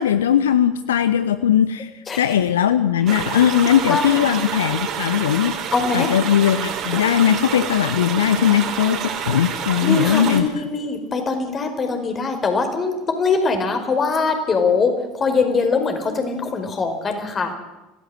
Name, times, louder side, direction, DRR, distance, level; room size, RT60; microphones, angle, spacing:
voice 1, 0.0-1.9 2.2-5.6 5.9-10.5, left 9 dB, 70° left, 14 dB, 0.8 m, -19 dB
sound 1, 3.1-10.4, right 7 dB, 45° right, 4.0 m, -28 dB
voice 2, 3.9-4.2 5.7-6.1 9.8-17.5, left 4 dB, 30° left, 6 dB, 4.9 m, -22 dB
25.0 x 17.0 x 7.9 m, 1.0 s
figure-of-eight pair, 70°, 0 cm